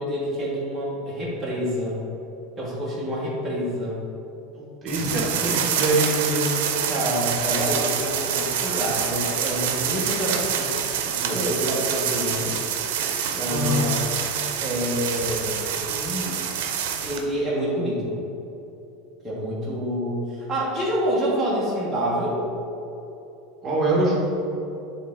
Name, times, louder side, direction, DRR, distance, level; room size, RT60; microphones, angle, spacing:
voice 1, 0.0-2.0 2.6-4.0 6.9-10.7 11.0-12.6 13.3-14.0 14.6-16.4 17.0-18.1 19.2-22.4, equal, 5° right, -9 dB, 1.3 m, -27 dB
voice 2, 4.5-6.6 13.5-13.9 23.6-24.2, right 1 dB, 25° right, -5 dB, 1.4 m, -24 dB
sound 1, 4.9-17.2, right 8 dB, 75° right, 0.7 m, -26 dB
8.4 x 3.7 x 3.7 m, 3.0 s
supercardioid pair, 145°, 0 cm